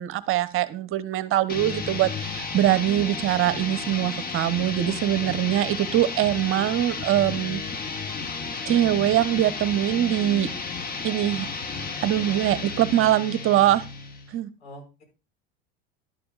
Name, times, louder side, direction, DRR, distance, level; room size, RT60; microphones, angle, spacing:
voice 1, 0.0-7.8 8.7-10.5 11.0-11.5 12.0-13.8 14.3-14.5, right 13 dB, 40° right, 14 dB, 1.0 m, -23 dB
sound 1, 1.5-14.3, left 4 dB, 25° left, 1.3 m, -33 dB
voice 2, 4.8-5.5 14.6-15.0, equal, 80° left, 1 dB, 5.8 m, -44 dB
11.5 x 11.5 x 2.5 m, 0.30 s
hypercardioid pair, 90°, 33 cm